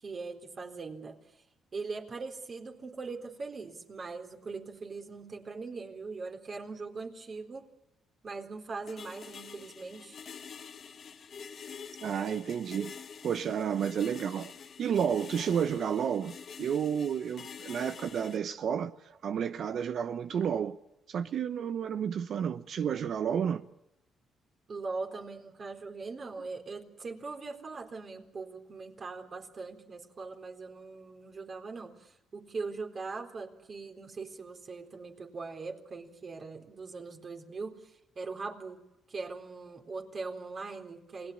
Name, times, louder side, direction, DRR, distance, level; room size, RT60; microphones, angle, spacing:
voice 1, 0.0-1.2 1.7-7.7 8.2-10.2 24.7-37.8 38.2-38.8 39.1-41.3, right 4 dB, 40° right, 3.9 m, -41 dB
sound 1, 8.9-18.4, left 6 dB, 50° left, 1.4 m, -47 dB
voice 2, 12.0-12.9 13.2-14.5 14.8-18.9 19.2-20.8 21.1-23.6, right 8 dB, 65° right, 0.9 m, -31 dB
28.0 x 19.0 x 8.6 m
cardioid pair, 90°, 0 cm